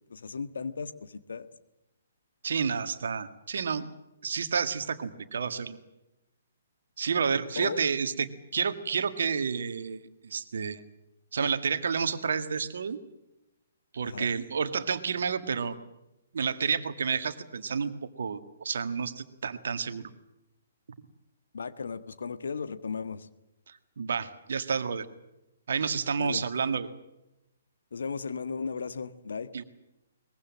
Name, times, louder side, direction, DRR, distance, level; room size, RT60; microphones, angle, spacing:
voice 1, 0.1-1.5 7.5-7.8 14.0-14.3 21.5-23.3 26.2-26.4 27.9-29.5, left 5 dB, 60° left, 11 dB, 1.5 m, -36 dB
voice 2, 2.4-3.9 4.2-5.8 7.0-10.8 11.3-13.0 13.9-15.8 16.3-17.9 18.2-20.0 24.0-25.1 25.7-26.9 29.5-29.6, right 6 dB, 60° right, 9 dB, 1.8 m, -30 dB
23.0 x 21.5 x 7.5 m, 0.91 s
figure-of-eight pair, 125°, 0 cm